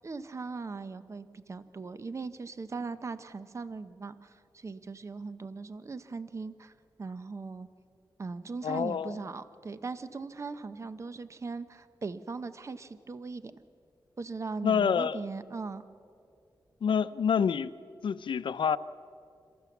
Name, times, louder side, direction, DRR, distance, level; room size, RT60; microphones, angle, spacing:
voice 1, 0.0-6.7 7.0-7.7 8.2-13.5 14.2-15.8, right 4 dB, 35° right, 0.7 m, -39 dB
voice 2, 8.6-9.2 14.6-15.2 16.8-17.7 18.0-18.8, left 7 dB, 85° left, 0.5 m, -27 dB
28.0 x 14.0 x 7.1 m
wide cardioid pair, 125°, 8 cm